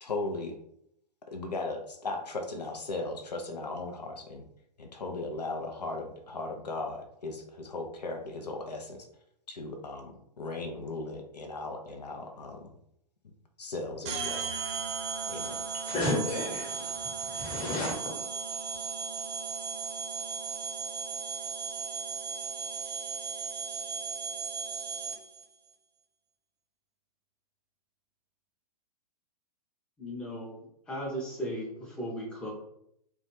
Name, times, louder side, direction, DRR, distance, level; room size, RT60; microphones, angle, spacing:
voice 1, 0.0-0.6 1.3-4.4 4.8-9.1 9.5-10.1 10.4-12.6 13.6-14.5 15.3-15.7, left 2 dB, 80° left, 3 dB, 0.4 m, -37 dB
sound 1, 14.0-25.4, right 5 dB, 40° right, 0.5 m, -36 dB
voice 2, 15.9-18.1, left 1 dB, 25° left, -1 dB, 1.0 m, -33 dB
voice 3, 30.0-32.5, equal, 5° left, -5 dB, 0.5 m, -37 dB
2.3 x 2.1 x 3.1 m, 0.75 s
figure-of-eight pair, 110°, 21 cm